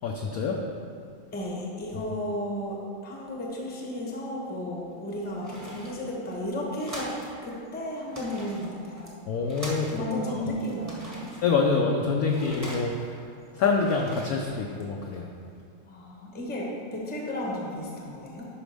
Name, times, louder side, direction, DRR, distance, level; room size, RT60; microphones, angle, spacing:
voice 1, 0.0-0.6 9.3-10.0 11.4-13.2 13.5-15.3, left 4 dB, 80° left, 1 dB, 0.8 m, -26 dB
voice 2, 1.3-2.8 3.0-9.1 9.9-11.3 15.9-18.5, left 1 dB, 10° left, -3 dB, 0.6 m, -33 dB
sound 1, 4.8-7.4 7.6-7.7 8.0-10.3 10.6-13.2 13.6-15.1, equal, 10° right, 0.9 m, -42 dB
11.5 x 4.9 x 3.4 m, 2.4 s
omnidirectional pair, 2.2 m